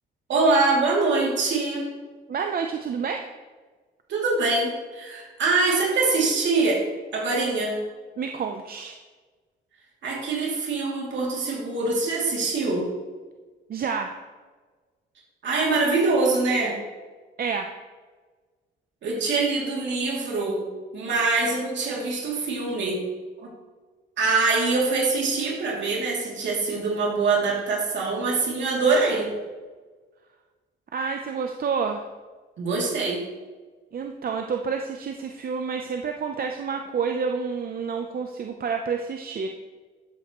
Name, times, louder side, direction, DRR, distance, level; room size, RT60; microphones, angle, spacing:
voice 1, 0.3-1.9 4.1-6.8 7.1-7.8 10.0-12.9 15.4-16.7 19.0-20.6 20.9-23.0 23.4-23.5 24.2-29.3 32.6-33.2, right 3 dB, 65° right, -3 dB, 2.9 m, -24 dB
voice 2, 2.3-3.3 8.2-9.0 13.7-14.1 17.4-17.7 30.9-32.0 33.9-39.5, right 5 dB, 50° right, 4 dB, 0.7 m, -29 dB
14.0 x 7.8 x 3.1 m, 1.4 s
cardioid pair, 90°, 20 cm